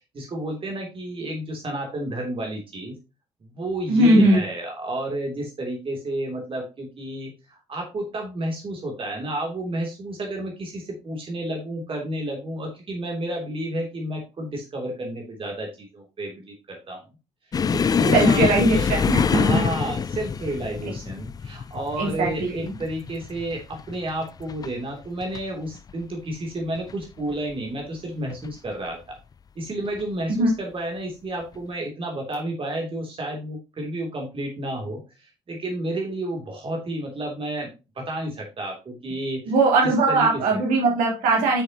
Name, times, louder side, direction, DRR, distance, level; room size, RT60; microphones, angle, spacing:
voice 1, 0.1-3.0 3.4-17.0 17.7-19.0 19.3-29.0 29.5-37.7 38.0-39.5 39.8-40.6, right 1 dB, 35° right, 1 dB, 3.1 m, -31 dB
voice 2, 3.9-4.4 18.1-19.6 22.0-22.7 30.4-30.5 39.5-41.6, right 2 dB, 60° right, -1 dB, 3.4 m, -20 dB
sound 1, 17.5-24.7 25.0-25.4 25.8-25.9 26.8-27.3 28.3-28.5 29.9-30.0, left 6 dB, 25° left, 0.4 m, -25 dB
10.0 x 6.6 x 2.9 m, 0.28 s
figure-of-eight pair, 45°, 15 cm